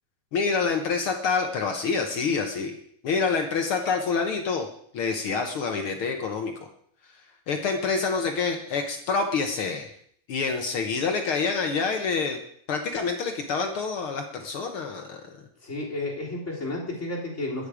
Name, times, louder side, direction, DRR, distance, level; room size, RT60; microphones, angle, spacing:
voice 1, 0.3-2.7 3.0-4.7 4.9-6.5 7.5-9.9 10.3-12.4 12.7-15.4, left 5 dB, 70° left, 5 dB, 1.3 m, -27 dB
voice 2, 15.6-17.7, left 2 dB, 20° left, -4 dB, 3.4 m, -32 dB
21.5 x 8.6 x 5.0 m, 0.66 s
omnidirectional pair, 3.9 m